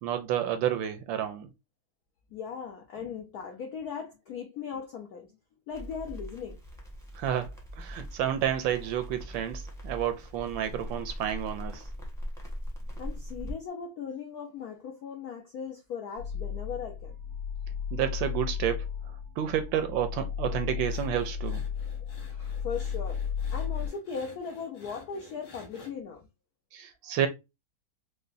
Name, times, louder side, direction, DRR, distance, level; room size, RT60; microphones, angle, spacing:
voice 1, 0.0-1.5 7.2-11.9 17.9-21.6 26.7-27.3, right 10 dB, 75° right, 1.2 m, -30 dB
voice 2, 2.3-5.3 5.7-6.6 13.0-17.2 22.3-23.2 23.5-26.3, left 6 dB, 75° left, 0.8 m, -38 dB
Crackle, 5.7-13.5, equal, ahead, 0.7 m, -41 dB
sound 1, 16.2-23.9, left 7 dB, 45° left, 1.7 m, -34 dB
sound 2, 20.8-25.9, left 3 dB, 60° left, 1.8 m, -52 dB
4.9 x 2.2 x 2.5 m
omnidirectional pair, 2.4 m